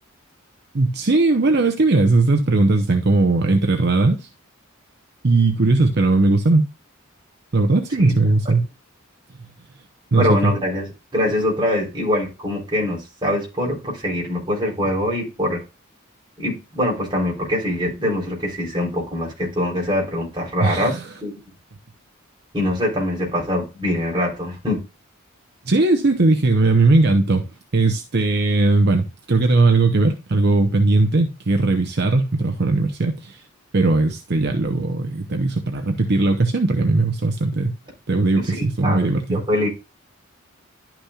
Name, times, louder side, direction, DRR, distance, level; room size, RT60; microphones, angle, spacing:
voice 1, 0.7-4.3 5.2-6.6 7.5-8.7 10.1-10.5 20.6-21.1 25.7-27.5 27.7-33.4 33.7-37.7 38.1-39.4, right 2 dB, 50° right, 0.8 m, -18 dB
voice 2, 10.1-15.6 16.4-21.3 22.5-24.8 38.4-39.7, left 1 dB, 20° right, 3.8 m, -23 dB
11.5 x 6.0 x 2.4 m
head